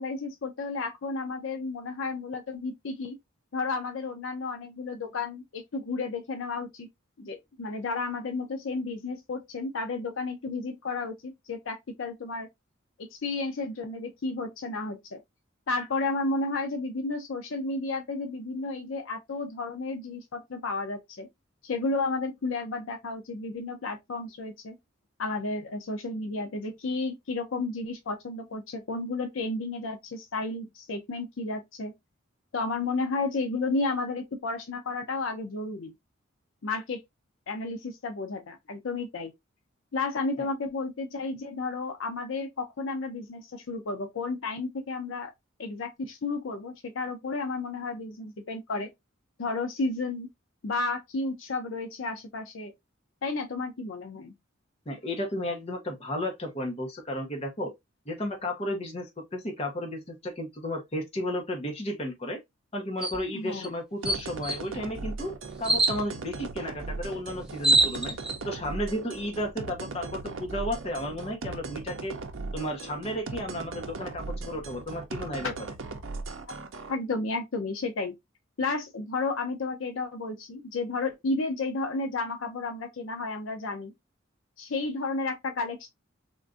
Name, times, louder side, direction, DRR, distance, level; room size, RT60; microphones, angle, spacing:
voice 1, 0.0-3.2 3.5-6.9 7.2-12.5 13.0-15.2 15.7-21.3 21.6-24.8 25.2-31.9 32.5-35.9 36.6-37.0 37.5-39.3 39.9-45.3 45.6-48.9 49.4-50.3 50.6-52.7 53.2-54.3 63.3-63.7 76.5-76.6 76.9-78.1 78.6-83.9 84.6-85.9, left 3 dB, 70° left, 0.5 m, -32 dB
voice 2, 54.9-57.7 58.1-62.4 62.7-65.3 65.6-68.1 68.4-72.1 72.5-75.5, left 1 dB, 30° left, 0.8 m, -33 dB
sound 1, 63.0-63.2 63.6-63.7 64.1-64.6 65.6-66.0 67.1-67.2 67.4-68.4, right 2 dB, 5° right, 0.6 m, -24 dB
sound 2, 64.0-76.9, right 3 dB, 70° right, 0.6 m, -38 dB
3.6 x 2.5 x 2.4 m
head